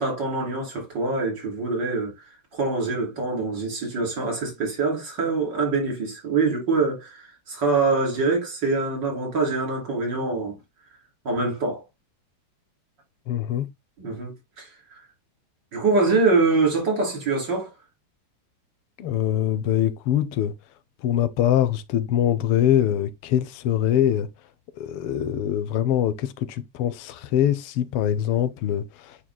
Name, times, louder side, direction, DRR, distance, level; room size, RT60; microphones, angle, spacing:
voice 1, 0.0-2.1 2.5-10.6 11.3-11.8 14.0-14.3 14.6-14.7 15.7-17.7, right 3 dB, 50° right, 3.7 m, -24 dB
voice 2, 13.3-13.7 19.0-20.5 21.0-24.3 24.8-29.2, left 11 dB, 85° left, 1.7 m, -23 dB
9.5 x 4.4 x 2.2 m
omnidirectional pair, 2.4 m